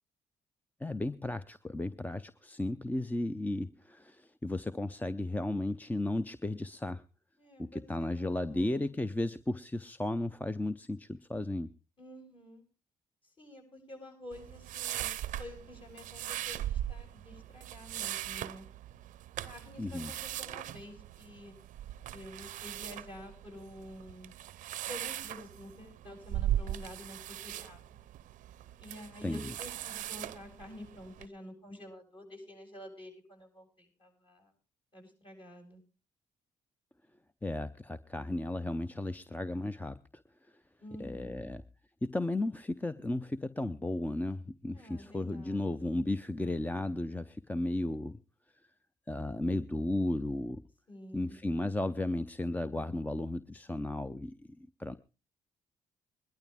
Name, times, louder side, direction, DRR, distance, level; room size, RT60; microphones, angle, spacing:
voice 1, 0.8-7.0 7.6-11.7 19.8-20.1 29.2-29.4 37.4-40.0 41.0-41.6 42.0-48.2 49.1-50.6 51.1-55.0, left 2 dB, 10° left, 13 dB, 0.7 m, -34 dB
voice 2, 7.4-8.9 12.0-12.6 13.4-15.1 15.4-18.7 19.4-21.6 22.1-24.3 24.8-28.0 28.8-34.5 34.9-35.8 40.8-41.5 44.7-46.0 50.9-51.4, left 1 dB, 40° left, 2 dB, 7.7 m, -49 dB
sound 1, 14.3-31.3, right 12 dB, 75° right, 0.6 m, -39 dB
21.5 x 11.5 x 3.6 m, 0.31 s
supercardioid pair, 70°, 13 cm